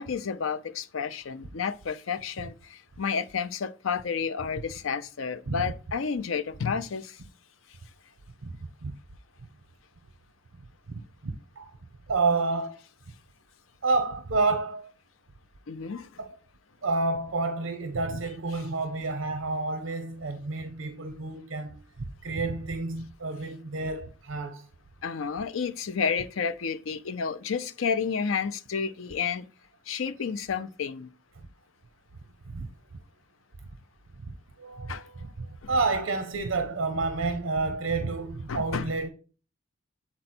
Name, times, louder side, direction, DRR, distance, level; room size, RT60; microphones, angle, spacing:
voice 1, 0.0-7.2 15.7-16.1 25.0-29.5 29.9-31.1 34.9-35.0 35.6-35.7 38.5-38.9, left 6 dB, 85° left, 0.5 m, -31 dB
voice 2, 10.9-11.8 12.1-12.8 13.8-14.9 16.2-16.4 16.8-24.7 32.5-32.7 34.3-39.1, right 3 dB, 75° right, 0.7 m, -30 dB
7.8 x 4.2 x 4.3 m
head